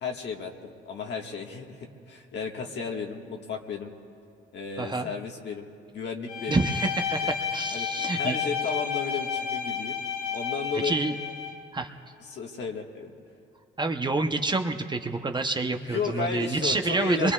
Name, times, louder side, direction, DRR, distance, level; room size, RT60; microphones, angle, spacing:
voice 1, 0.0-3.9 4.5-5.7 5.9-6.6 7.2-7.3 7.7-7.9 8.2-10.0 10.3-11.0 12.3-13.1 15.7-17.3, left 5 dB, 65° left, 1 dB, 1.7 m, -33 dB
voice 2, 4.8-5.1 6.5-8.4 10.8-11.1 11.7-11.9 13.8-17.3, right 3 dB, 20° right, 5 dB, 0.8 m, -27 dB
Bowed string instrument, 6.3-11.6, left 7 dB, 80° left, 3.9 m, -31 dB
26.0 x 22.5 x 2.4 m, 2.6 s
cardioid pair, 90°, 20 cm